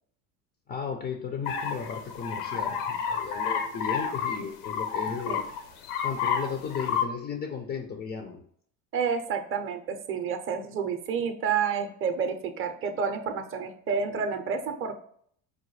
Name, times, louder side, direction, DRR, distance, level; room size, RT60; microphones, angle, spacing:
voice 1, 0.7-5.4 6.0-8.4, left 6 dB, 20° left, 4 dB, 0.3 m, -35 dB
sound 1, 1.5-7.0, left 7 dB, 80° left, 0.7 m, -30 dB
voice 2, 8.9-15.0, right 6 dB, 30° right, 7 dB, 0.5 m, -29 dB
4.8 x 2.1 x 3.1 m, 0.62 s
hypercardioid pair, 85°, 46 cm